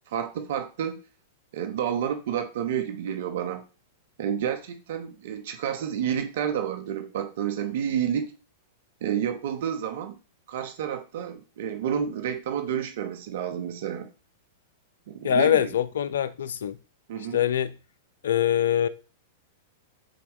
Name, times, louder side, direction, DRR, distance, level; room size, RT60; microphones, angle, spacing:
voice 1, 0.1-1.0 1.5-3.6 4.2-8.3 9.0-10.2 10.5-14.1 15.1-15.7 17.1-17.4, right 9 dB, 65° right, 1.0 m, -30 dB
voice 2, 15.2-16.8 17.3-17.7 18.2-18.9, left 9 dB, 75° left, 0.5 m, -23 dB
9.2 x 4.4 x 3.1 m
hypercardioid pair, 105°, 0 cm